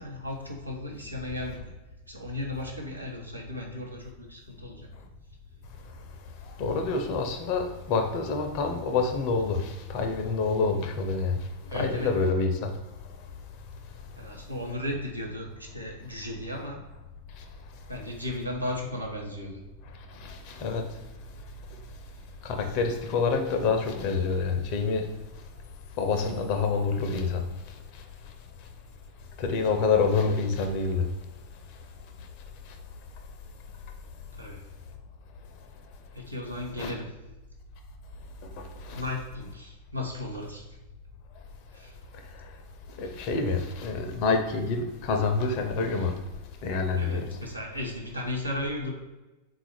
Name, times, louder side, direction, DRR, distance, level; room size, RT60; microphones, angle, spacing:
voice 1, 0.0-1.7 2.1-5.1 11.6-12.1 14.1-16.8 17.9-19.6 34.3-34.6 36.1-37.1 38.9-40.7 41.7-42.0 46.9-48.9, left 1 dB, 85° right, 0.8 m, -35 dB
voice 2, 6.6-11.4 11.7-12.7 20.2-20.8 22.4-25.1 26.0-27.4 29.4-31.1 36.8-36.9 38.9-39.0 43.0-46.1 46.6-47.3, left 4 dB, 45° left, 0.5 m, -27 dB
3.8 x 2.4 x 4.3 m
figure-of-eight pair, 90°, 0 cm